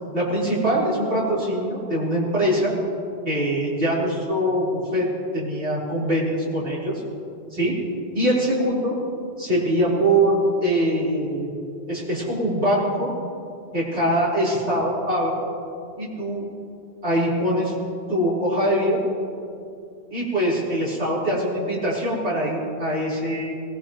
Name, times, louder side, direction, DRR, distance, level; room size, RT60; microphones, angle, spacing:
voice 1, 0.1-2.7 3.2-5.1 5.3-7.0 7.5-7.8 8.1-8.9 9.4-11.5 11.9-13.1 13.7-15.4 16.0-16.4 17.0-17.7 18.1-19.0 20.1-23.5, right 1 dB, 85° right, -7 dB, 4.7 m, -23 dB
21.0 x 18.5 x 3.1 m, 2.4 s
omnidirectional pair, 1.1 m